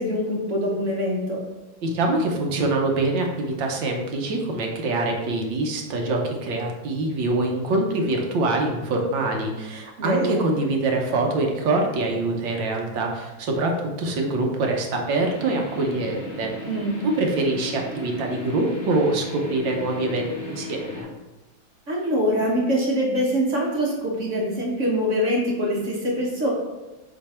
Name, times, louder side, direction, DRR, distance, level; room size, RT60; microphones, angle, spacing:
voice 1, 0.0-1.4 10.0-10.4 16.7-17.1 21.9-26.5, equal, 45° right, -3 dB, 1.3 m, -24 dB
voice 2, 1.8-13.7 14.0-16.5 17.0-21.1, right 2 dB, 70° right, 1 dB, 1.6 m, -24 dB
sound 1, 15.2-21.0, left 2 dB, 45° left, 2.4 m, -36 dB
7.5 x 3.2 x 4.3 m, 1.1 s
omnidirectional pair, 2.2 m